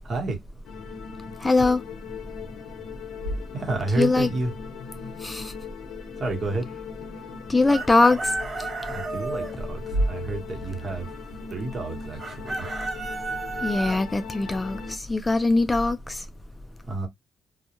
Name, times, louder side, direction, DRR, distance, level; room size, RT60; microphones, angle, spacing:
voice 1, 0.0-0.4 3.5-4.5 6.2-6.7 8.9-11.2 11.5-12.7 16.9-17.1, right 3 dB, 50° right, 1.1 m, -30 dB
sound 1, 0.6-15.0, left 6 dB, 75° left, 0.6 m, -40 dB
voice 2, 1.4-1.8 4.0-4.3 5.2-5.5 7.5-8.3 13.6-16.2, left 3 dB, 20° left, 0.3 m, -22 dB
sound 2, 2.9-4.3 5.5-6.2 8.3-8.5 9.7-11.7, right 1 dB, 90° right, 0.7 m, -33 dB
Chicken rooster, 7.7-9.5 12.2-14.0, right 3 dB, 35° right, 0.7 m, -32 dB
2.2 x 2.1 x 2.9 m
cardioid pair, 90°, 0 cm